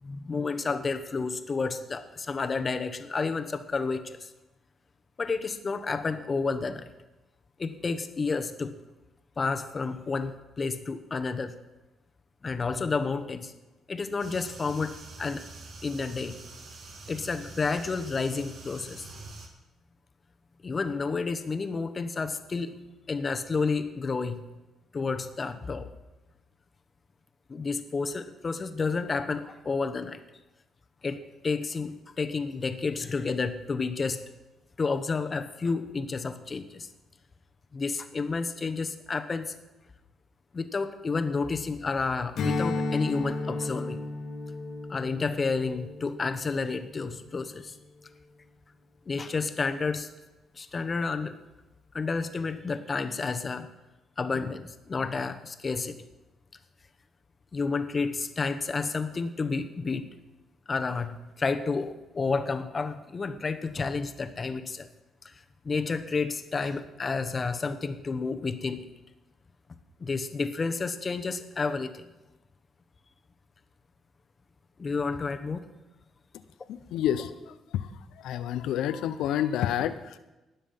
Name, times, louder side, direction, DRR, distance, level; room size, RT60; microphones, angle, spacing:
voice 1, 0.0-4.3 5.2-6.9 7.6-8.7 9.4-11.5 12.4-13.5 13.9-15.5 15.8-16.3 17.1-19.1 20.6-22.7 23.1-24.4 24.9-25.9 27.5-30.2 31.0-34.2 34.8-36.9 37.7-39.5 40.5-44.0 44.9-47.8 49.1-50.1 50.6-51.4 51.9-53.7 54.2-56.0 57.5-60.1 60.7-64.9 65.2-65.3 65.6-68.9 70.0-72.1 74.8-75.6, left 4 dB, 35° left, 9 dB, 1.1 m, -30 dB
sound 1, 14.2-19.5, right 3 dB, 60° right, 2.1 m, -45 dB
Strum, 42.4-47.1, left 3 dB, 65° left, 1.6 m, -33 dB
voice 2, 76.7-80.2, left 10 dB, 85° left, 13 dB, 0.7 m, -29 dB
19.5 x 7.2 x 5.7 m, 1.0 s
cardioid pair, 90°, 0 cm